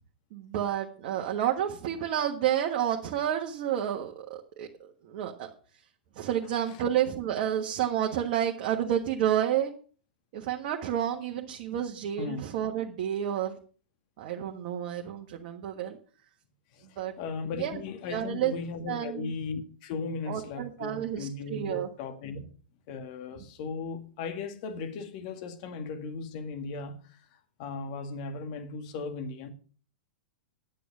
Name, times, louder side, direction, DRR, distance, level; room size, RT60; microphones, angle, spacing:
voice 1, 0.3-5.5 6.1-9.7 10.3-13.6 14.2-16.0 17.0-17.1 17.6-17.8 18.1-18.5 18.9-19.3 20.3-21.9, right 10 dB, 50° right, 1.4 m, -30 dB
voice 2, 16.7-22.4 22.9-27.2 27.6-29.5, left 4 dB, 50° left, 1.8 m, -37 dB
10.0 x 8.5 x 6.2 m
figure-of-eight pair, 100°, 5 cm